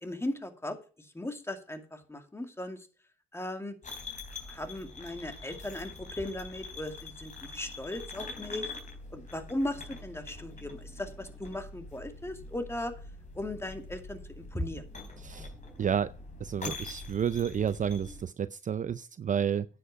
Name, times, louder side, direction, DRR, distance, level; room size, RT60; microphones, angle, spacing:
voice 1, 0.0-2.9 3.3-3.7 4.5-8.7 9.1-12.9 13.3-14.9, left 1 dB, 10° left, 6 dB, 2.3 m, -37 dB
sound 1, 3.8-18.2, left 3 dB, 40° left, 4.1 m, -44 dB
voice 2, 15.2-15.5 15.8-16.1 16.4-19.7, right 8 dB, 40° right, 15 dB, 0.5 m, -30 dB
10.0 x 8.1 x 4.8 m, 0.37 s
cardioid pair, 90°, 20 cm